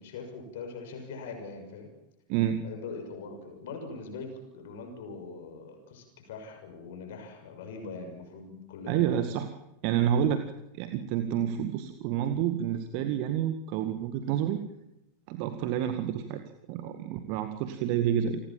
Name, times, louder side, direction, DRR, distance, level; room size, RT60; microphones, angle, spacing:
voice 1, 0.0-1.9 2.6-9.3, left 4 dB, 55° left, 6 dB, 6.5 m, -42 dB
voice 2, 2.3-2.6 8.9-9.5 9.8-10.4 10.7-14.6 15.3-16.4 16.7-18.4, right 10 dB, 45° right, 9 dB, 2.0 m, -29 dB
29.0 x 19.5 x 7.4 m, 0.89 s
figure-of-eight pair, 90°, 0 cm